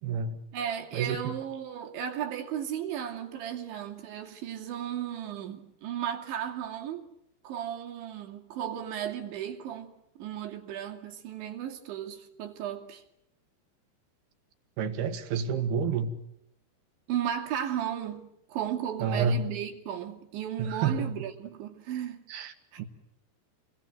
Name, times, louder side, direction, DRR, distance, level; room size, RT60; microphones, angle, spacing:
voice 1, 0.0-0.4 0.9-1.2 14.8-16.1 19.0-19.4 20.6-21.1 22.3-22.9, right 5 dB, 65° right, 3.5 m, -29 dB
voice 2, 0.5-7.0 7.4-13.0 17.1-22.2 22.7-22.8, right 9 dB, 90° right, 5.0 m, -35 dB
29.5 x 21.5 x 9.3 m
omnidirectional pair, 5.1 m